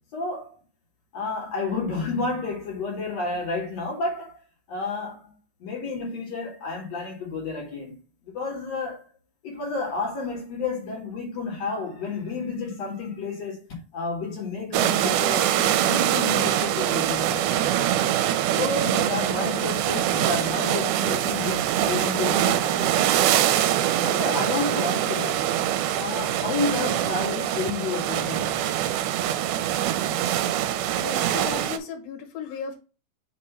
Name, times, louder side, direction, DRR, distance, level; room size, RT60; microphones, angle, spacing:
voice 1, 0.1-0.6 1.1-4.4 4.7-5.3 5.6-8.0 8.2-9.0 9.4-13.6 13.9-17.5 18.6-23.0 24.0-25.5 25.9-28.6, left 3 dB, 50° left, 2.5 m, -31 dB
sound 1, 14.7-31.8, right 11 dB, 85° right, 2.5 m, -24 dB
voice 2, 31.0-32.8, left 7 dB, 75° left, 2.8 m, -35 dB
5.9 x 3.0 x 5.5 m
omnidirectional pair, 4.3 m